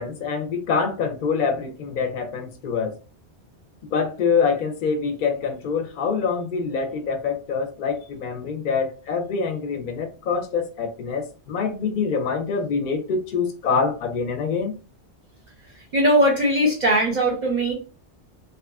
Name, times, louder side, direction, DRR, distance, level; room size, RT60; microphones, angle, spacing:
voice 1, 0.0-2.9 3.9-14.7, left 5 dB, 55° left, 0.6 m, -25 dB
voice 2, 15.9-17.7, right 1 dB, 50° right, 0.6 m, -19 dB
2.8 x 2.4 x 2.3 m
omnidirectional pair, 1.2 m